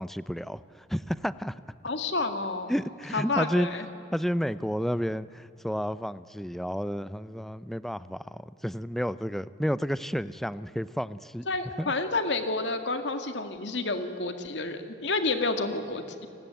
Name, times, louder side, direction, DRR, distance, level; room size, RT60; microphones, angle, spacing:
voice 1, 0.0-1.6 2.7-3.7 4.1-11.4 11.8-11.9, equal, ahead, 15 dB, 0.5 m, -31 dB
voice 2, 1.8-2.7 3.1-3.9 11.5-16.3, left 3 dB, 85° left, 7 dB, 2.0 m, -30 dB
29.5 x 20.0 x 9.3 m, 2.8 s
head